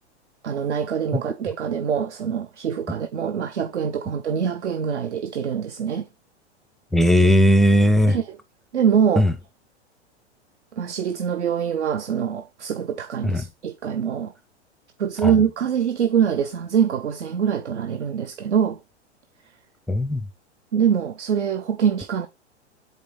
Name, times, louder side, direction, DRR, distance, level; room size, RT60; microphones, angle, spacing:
voice 1, 0.4-6.1 8.1-8.4 8.7-9.3 10.8-14.3 15.0-18.8 20.7-22.3, right 8 dB, 80° right, 0.7 m, -24 dB
voice 2, 6.9-8.2 9.2-9.3 13.2-13.4 15.2-15.4 19.9-20.2, equal, ahead, 0.4 m, -17 dB
8.2 x 3.2 x 3.9 m
figure-of-eight pair, 100°, 34 cm